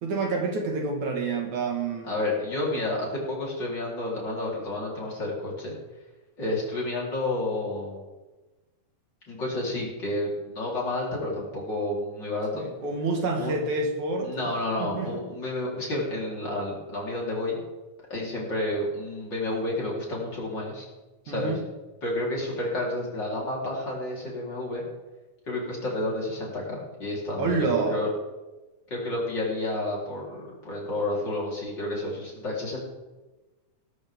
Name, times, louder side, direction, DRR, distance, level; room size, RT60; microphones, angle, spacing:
voice 1, 0.0-2.1 12.5-14.3 14.8-15.1 21.3-21.6 27.4-28.0, right 3 dB, 65° right, 2 dB, 3.1 m, -28 dB
voice 2, 2.0-5.8 6.4-8.0 9.3-12.7 13.4-13.6 14.2-17.6 18.1-20.9 21.2-21.6 22.0-24.8 25.5-28.1 28.9-32.8, left 1 dB, 35° left, -4 dB, 4.4 m, -30 dB
18.0 x 13.0 x 3.7 m, 1.2 s
omnidirectional pair, 3.6 m